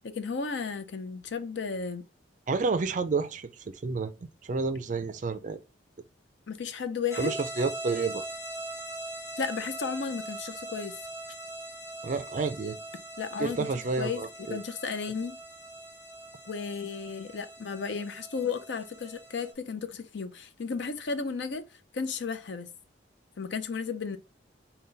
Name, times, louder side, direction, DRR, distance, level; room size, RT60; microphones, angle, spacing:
voice 1, 0.0-2.0 6.5-7.3 9.4-11.0 13.2-13.7 14.0-15.4 16.5-21.6 21.9-22.7 23.4-24.2, left 5 dB, 65° left, 0.5 m, -34 dB
voice 2, 2.5-5.6 7.2-8.2 12.0-12.8 13.4-14.6, right 4 dB, 40° right, 0.4 m, -30 dB
sound 1, 7.1-19.5, right 1 dB, 15° left, 0.6 m, -41 dB
3.9 x 2.2 x 3.7 m
head